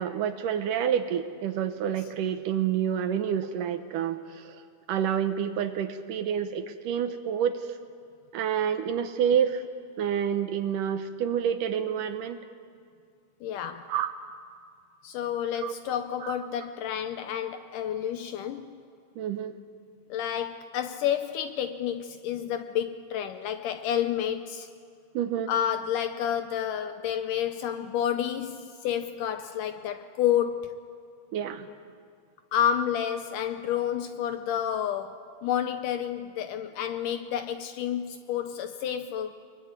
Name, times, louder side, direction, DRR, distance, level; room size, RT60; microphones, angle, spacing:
voice 1, 0.0-7.8 8.3-9.6 10.0-12.4 13.9-14.1 15.6-15.8 16.2-16.4 19.2-19.6 25.1-25.5 31.3-31.7, right 8 dB, 70° right, 2.2 m, -28 dB
voice 2, 13.4-13.9 15.0-18.8 20.1-24.7 25.5-30.7 32.5-39.4, left 9 dB, 75° left, 2.0 m, -30 dB
23.0 x 22.5 x 9.7 m
omnidirectional pair, 4.3 m